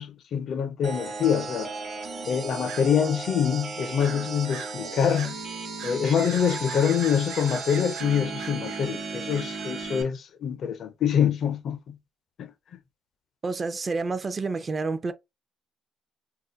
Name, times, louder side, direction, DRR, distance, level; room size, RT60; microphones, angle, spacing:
voice 1, 0.0-1.7 2.3-5.4 5.8-12.0 12.4-12.5, left 8 dB, 60° left, 0.4 m, -25 dB
sound 1, 0.8-10.0, right 4 dB, 50° right, 0.8 m, -36 dB
sound 2, 2.7-2.9 4.0-4.8 5.1-5.4 5.8-10.1, right 7 dB, 90° right, 0.6 m, -42 dB
voice 2, 13.4-15.1, right 3 dB, 30° right, 0.4 m, -29 dB
2.3 x 2.1 x 3.8 m
cardioid pair, 100°, 0 cm